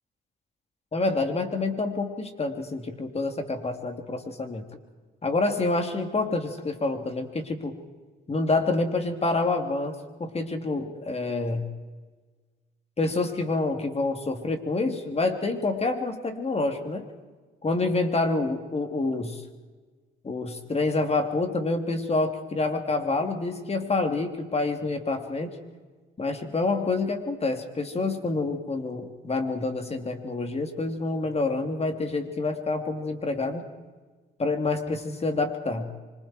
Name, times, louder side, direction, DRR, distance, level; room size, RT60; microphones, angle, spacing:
voice 1, 0.9-4.6 5.2-7.7 8.3-11.7 13.0-17.1 17.6-19.4 20.2-25.5 26.2-33.6 34.4-35.9, left 3 dB, 30° left, 6 dB, 3.2 m, -27 dB
26.0 x 25.5 x 4.7 m, 1.3 s
cardioid pair, 90°, 20 cm